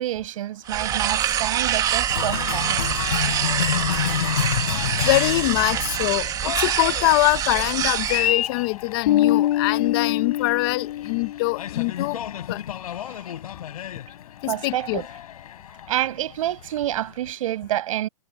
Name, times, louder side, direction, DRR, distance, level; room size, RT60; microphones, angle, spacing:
voice 1, 0.0-2.8 14.5-15.1 15.9-18.1, right 13 dB, 65° right, 7.2 m, -28 dB
sound 1, 0.7-8.3, right 10 dB, 20° right, 1.7 m, -25 dB
Cheering, 2.1-17.3, left 10 dB, 80° left, 4.6 m, -30 dB
voice 2, 5.0-12.2 12.5-12.6 14.4-15.0, left 20 dB, 40° left, 1.0 m, -23 dB
Bass guitar, 9.1-11.7, left 13 dB, 60° left, 7.8 m, -23 dB
hypercardioid pair, 155°, 19 cm